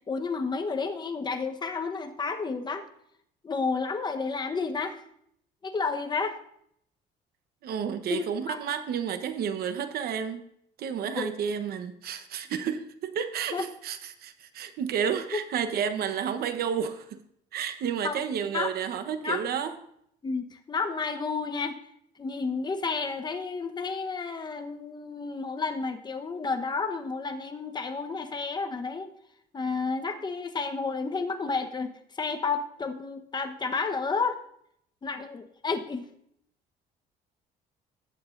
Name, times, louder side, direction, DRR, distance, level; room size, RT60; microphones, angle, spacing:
voice 1, 0.1-2.8 3.4-5.0 5.6-6.4 8.1-8.6 11.2-11.3 13.5-13.6 15.3-15.4 18.0-18.7 19.2-19.4 20.2-21.8 22.2-29.1 29.5-34.4 35.0-36.1, left 4 dB, 25° left, 6 dB, 1.0 m, -31 dB
voice 2, 7.6-10.4 10.8-17.2 17.5-19.8, right 7 dB, 65° right, 9 dB, 1.1 m, -31 dB
18.0 x 7.9 x 2.6 m, 0.71 s
cardioid pair, 110°, 17 cm